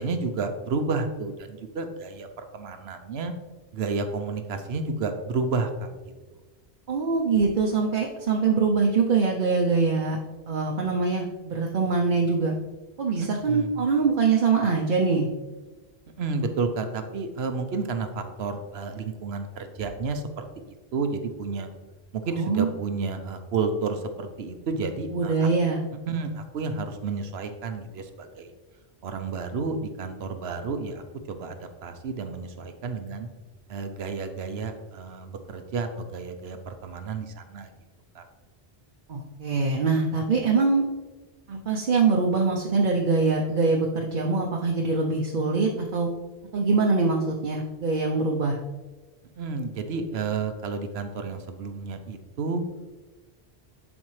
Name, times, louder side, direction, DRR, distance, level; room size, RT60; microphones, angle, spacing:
voice 1, 0.0-3.3 3.7-5.9 6.3-6.4 13.2-13.7 16.2-21.7 22.1-25.5 26.1-28.5 29.0-33.3 33.7-37.7 38.1-38.3 49.4-52.6, right 4 dB, 80° right, 7 dB, 1.0 m, -31 dB
voice 2, 6.9-10.2 10.5-12.5 13.0-15.3 22.3-22.7 25.1-26.2 39.1-40.8 41.5-46.1 46.5-48.6, right 4 dB, 55° right, -1 dB, 0.8 m, -23 dB
11.0 x 4.4 x 3.2 m, 1.2 s
omnidirectional pair, 1.1 m